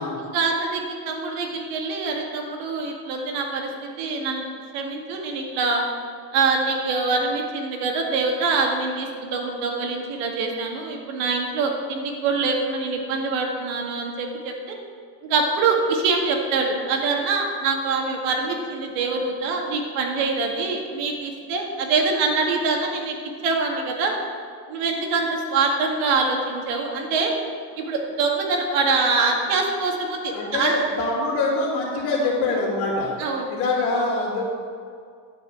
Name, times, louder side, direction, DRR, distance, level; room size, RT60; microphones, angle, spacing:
voice 1, 0.3-4.5 4.7-5.8 6.3-14.8 15.2-23.2 23.4-24.1 24.7-27.3 27.8-30.7 33.2-33.5, right 4 dB, 75° right, 1 dB, 2.0 m, -24 dB
voice 2, 30.3-33.1 33.5-34.4, left 2 dB, 65° left, -9 dB, 2.6 m, -24 dB
10.5 x 5.3 x 8.0 m, 2.2 s
cardioid pair, 175°, 42 cm